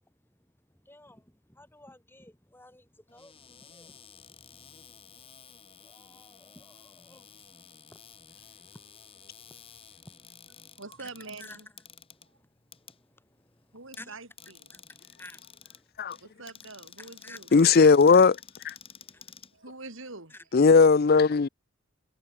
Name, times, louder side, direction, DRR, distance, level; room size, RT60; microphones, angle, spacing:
voice 1, 0.7-4.4 5.8-8.0 8.7-10.7 11.0-11.1 11.4-11.6 12.1-12.4 12.8-14.2 14.7-15.9 16.2-16.3 17.0-17.4 19.1-19.3 20.3-20.4, left 1 dB, 10° left, 3.5 m, -53 dB
Cupboard open or close, 3.1-20.2, left 7 dB, 25° left, 4.1 m, -52 dB
voice 2, 10.8-11.7 13.7-14.8 16.2-17.5 19.5-20.6, right 3 dB, 65° right, 4.1 m, -45 dB
voice 3, 17.5-18.4 18.6-18.7 20.5-21.5, left 5 dB, 45° left, 0.4 m, -17 dB
head